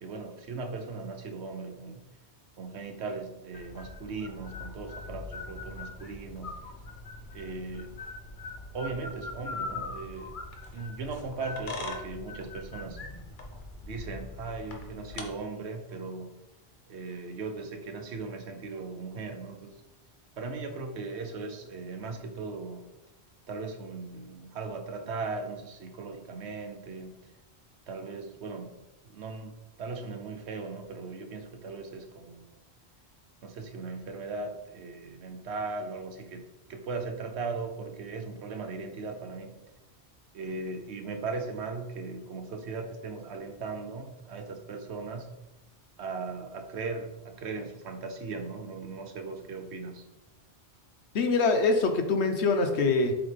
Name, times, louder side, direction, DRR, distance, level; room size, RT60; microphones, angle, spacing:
voice 1, 0.0-2.1 2.6-6.6 7.3-8.0 8.7-10.4 10.7-13.0 13.8-16.4 16.9-19.8 20.4-22.9 23.5-27.2 27.9-28.7 29.0-29.5 29.8-32.6 33.4-39.6 40.3-45.3 46.0-50.1, right 4 dB, 85° right, 6 dB, 1.1 m, -38 dB
sound 1, 3.5-15.2, left 3 dB, 50° left, 1.0 m, -41 dB
voice 2, 51.1-53.1, left 3 dB, 90° left, 6 dB, 1.1 m, -24 dB
7.2 x 4.1 x 3.3 m, 0.97 s
omnidirectional pair, 1.1 m